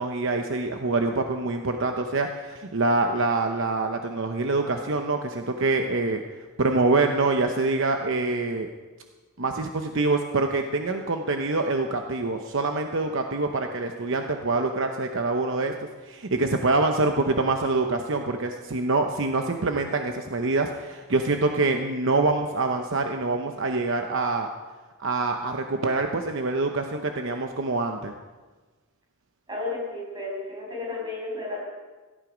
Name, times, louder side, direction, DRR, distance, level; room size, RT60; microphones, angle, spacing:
voice 1, 0.0-6.2 6.6-8.7 9.4-15.7 16.0-24.5 25.0-28.1, right 3 dB, 60° right, 4 dB, 0.9 m, -25 dB
voice 2, 29.5-31.6, left 2 dB, 20° right, -4 dB, 6.4 m, -32 dB
17.5 x 12.5 x 5.1 m, 1.3 s
head